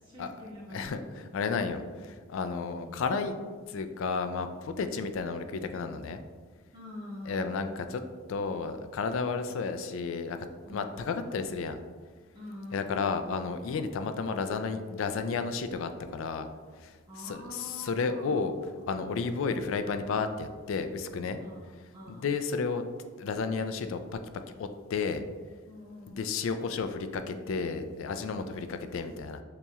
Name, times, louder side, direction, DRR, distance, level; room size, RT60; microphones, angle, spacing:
voice 1, 0.0-0.9 2.6-2.9 6.7-7.5 10.6-11.4 12.3-13.3 17.1-18.4 21.4-22.2 25.7-26.3, left 1 dB, 20° right, -8 dB, 1.3 m, -46 dB
voice 2, 0.7-3.4 3.7-6.2 7.3-8.0 8.3-10.4 10.7-11.8 12.7-16.5 16.8-18.6 18.9-21.4 22.1-22.8 23.2-24.2 24.6-25.2 26.1-29.4, left 4 dB, 70° left, 8 dB, 0.3 m, -32 dB
6.9 x 2.9 x 2.3 m, 1.5 s
head